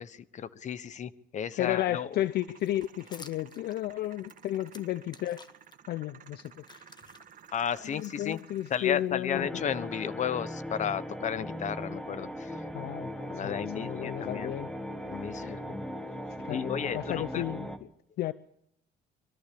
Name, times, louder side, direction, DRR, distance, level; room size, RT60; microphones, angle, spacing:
voice 1, 0.0-2.1 7.5-8.4 8.7-12.6 13.2-14.5 15.1-15.8 16.5-17.4, left 8 dB, 45° left, 1.2 m, -33 dB
voice 2, 1.6-5.4 5.9-6.6 7.8-9.5 12.7-13.1 13.4-14.7 15.3-15.6 16.4-17.9 18.2-18.3, left 13 dB, 70° left, 0.7 m, -33 dB
sound 1, 2.1-9.1, right 8 dB, 50° right, 2.0 m, -54 dB
sound 2, 2.6-5.8 6.2-9.3, left 4 dB, 25° left, 1.5 m, -54 dB
sound 3, 9.3-17.8, equal, 5° left, 1.8 m, -38 dB
23.5 x 13.5 x 8.5 m
cardioid pair, 110°, 17 cm